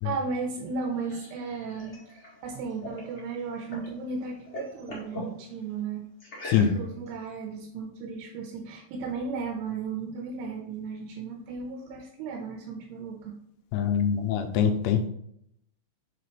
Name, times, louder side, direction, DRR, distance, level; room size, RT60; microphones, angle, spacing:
voice 1, 0.0-6.1 6.8-13.3, right 4 dB, 80° right, 3 dB, 2.7 m, -35 dB
sound 1, 0.6-4.0 4.3-5.3 6.2-7.1, left 1 dB, 50° left, 0.8 m, -42 dB
voice 2, 13.7-15.1, left 8 dB, 85° left, 7 dB, 2.6 m, -24 dB
6.7 x 4.2 x 4.3 m, 0.73 s
omnidirectional pair, 4.9 m